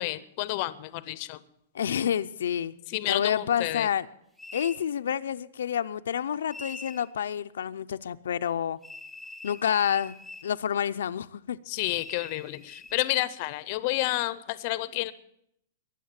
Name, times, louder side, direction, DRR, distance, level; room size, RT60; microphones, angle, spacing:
voice 1, 0.0-1.4 2.9-3.9 11.7-15.1, left 18 dB, 35° left, 16 dB, 0.6 m, -30 dB
voice 2, 1.7-2.7 3.1-4.1 4.5-8.8 9.4-10.2 10.4-11.6, left 9 dB, 90° left, 9 dB, 0.5 m, -28 dB
sound 1, 4.4-4.8 6.5-7.1 8.8-10.5 11.8-13.2, left 2 dB, 5° right, 0.8 m, -44 dB
21.5 x 7.2 x 7.4 m, 0.74 s
supercardioid pair, 175°, 0 cm